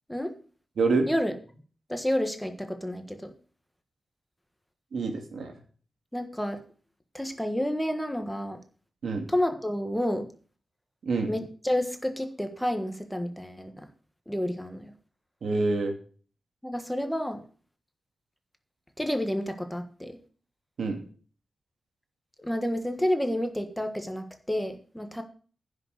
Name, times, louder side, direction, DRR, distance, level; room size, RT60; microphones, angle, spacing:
voice 1, 0.8-1.1 4.9-5.5 9.0-9.2 11.0-11.3 15.4-15.9 20.8-21.0, right 3 dB, 75° right, 4 dB, 2.7 m, -26 dB
voice 2, 1.9-3.3 6.1-6.6 7.1-8.6 9.3-10.2 11.3-13.9 14.3-14.9 16.6-17.4 19.0-20.2 22.4-25.2, equal, 5° left, 6 dB, 1.5 m, -30 dB
10.5 x 6.6 x 8.0 m, 0.42 s
wide cardioid pair, 130°, 0 cm